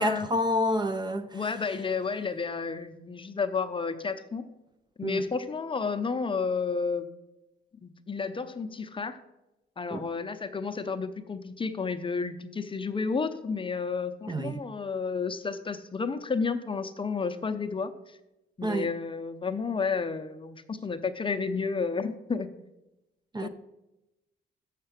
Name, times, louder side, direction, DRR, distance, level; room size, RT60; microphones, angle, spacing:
voice 1, 0.0-1.4 5.0-5.2 9.9-10.0 14.3-14.7 18.6-18.9 23.3-23.5, equal, 20° right, 0.5 m, -28 dB
voice 2, 1.3-4.4 5.0-7.1 7.8-9.2 9.8-18.2 18.6-22.5 23.4-23.5, left 5 dB, 25° left, 0.6 m, -31 dB
6.6 x 6.6 x 5.9 m
cardioid pair, 90°, 20 cm